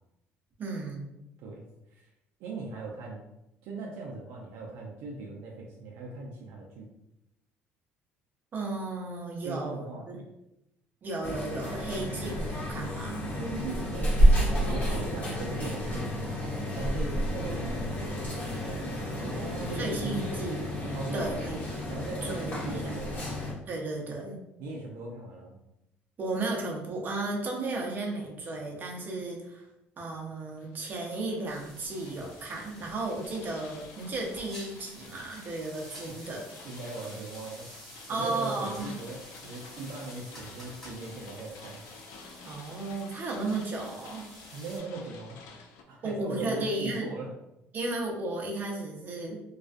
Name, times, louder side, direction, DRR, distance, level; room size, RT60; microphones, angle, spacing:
voice 1, 0.6-1.1 8.5-10.2 11.0-13.3 19.1-20.7 21.1-21.6 22.2-22.7 23.7-24.4 26.2-29.7 30.0-36.4 38.1-38.9 42.4-44.2 46.0-47.1 47.7-49.4, right 2 dB, 40° right, 0 dB, 0.7 m, -34 dB
voice 2, 2.4-3.2 3.6-6.9 9.4-10.2 13.4-14.4 14.6-18.3 19.2-20.3 20.9-21.6 21.9-23.3 24.6-25.6 36.1-36.2 36.6-37.7 38.1-41.8 44.5-45.4 45.9-47.3, right 3 dB, 80° right, -2 dB, 0.4 m, -39 dB
sound 1, 11.2-23.5, equal, 35° left, 0.9 m, -29 dB
sound 2, 30.6-45.8, left 4 dB, 80° left, 0.4 m, -51 dB
sound 3, 31.5-44.8, equal, 5° left, 1.2 m, -50 dB
2.3 x 2.3 x 2.4 m, 0.88 s
supercardioid pair, 95°, 5 cm